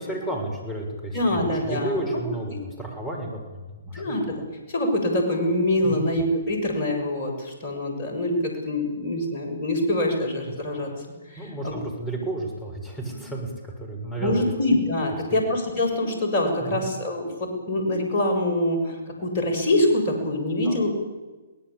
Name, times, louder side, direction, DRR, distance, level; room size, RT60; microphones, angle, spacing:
voice 1, 0.0-4.2 5.8-6.1 11.4-14.5 16.6-16.8 20.6-20.8, right 2 dB, 10° left, 2 dB, 6.7 m, -32 dB
voice 2, 1.1-2.2 2.5-2.6 4.0-10.9 11.3-11.8 14.2-20.9, left 1 dB, 40° left, 3 dB, 7.4 m, -25 dB
23.5 x 18.5 x 8.8 m, 1.2 s
figure-of-eight pair, 120°, 0 cm